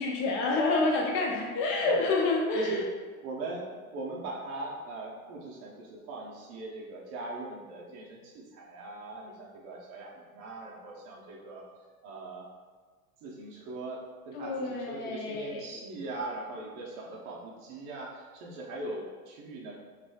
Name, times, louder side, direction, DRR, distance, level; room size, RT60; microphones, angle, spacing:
voice 1, 0.0-2.8 14.3-15.7, left 3 dB, 30° left, -1 dB, 0.6 m, -28 dB
voice 2, 3.2-11.7 12.0-12.5 13.2-19.8, right 2 dB, 35° right, -3 dB, 0.8 m, -40 dB
5.0 x 3.2 x 2.3 m, 1.5 s
hypercardioid pair, 135°, 45 cm